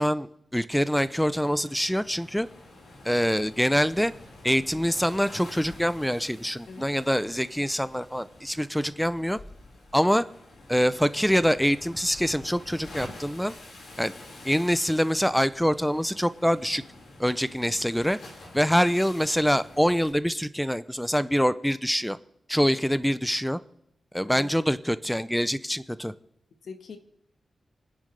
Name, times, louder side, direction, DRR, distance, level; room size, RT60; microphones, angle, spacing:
voice 1, 0.0-2.5 3.0-4.1 4.4-9.4 9.9-10.3 10.7-13.6 14.0-14.1 14.4-16.8 17.2-18.2 18.5-22.2 22.5-23.6 24.1-26.1, equal, ahead, 15 dB, 0.5 m, -25 dB
Waves surf, 1.0-20.1, left 2 dB, 85° left, 4.7 m, -48 dB
voice 2, 24.2-24.5 26.6-27.0, left 4 dB, 65° left, 7 dB, 1.5 m, -42 dB
30.0 x 10.0 x 3.3 m, 0.78 s
wide cardioid pair, 155°, 0 cm